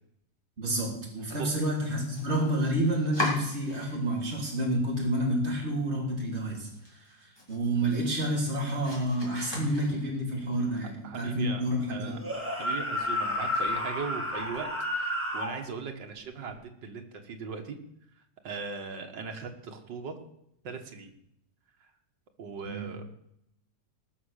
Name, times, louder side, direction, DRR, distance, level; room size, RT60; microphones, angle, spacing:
voice 1, 0.6-12.2 22.6-22.9, right 1 dB, 35° right, -2 dB, 3.7 m, -29 dB
Domestic sounds home sounds, 1.7-4.2 4.6-5.3 5.7-5.8 6.2-6.3 6.7-10.4, left 1 dB, 15° left, 3.8 m, -39 dB
voice 2, 11.0-11.6 11.9-12.2 12.6-17.8 18.4-20.2 20.6-21.1 22.4-23.0, right 5 dB, 90° right, 5 dB, 2.3 m, -39 dB
sound 1, 12.1-15.6, left 1 dB, 5° right, 2.6 m, -31 dB
19.0 x 6.5 x 6.6 m, 0.77 s
omnidirectional pair, 1.9 m